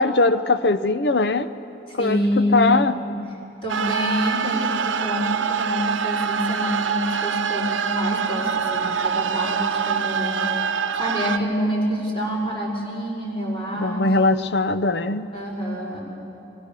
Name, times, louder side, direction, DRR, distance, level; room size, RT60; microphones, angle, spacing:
voice 1, 0.0-1.5 2.0-2.9 13.7-15.3, left 3 dB, 65° left, 12 dB, 0.7 m, -20 dB
voice 2, 2.0-3.1 3.6-10.4 11.0-14.0 15.3-16.0, equal, 30° left, -4 dB, 5.7 m, -26 dB
sound 1, 3.7-11.4, right 7 dB, 90° right, 0.7 m, -25 dB
25.0 x 22.0 x 6.8 m, 2.8 s
head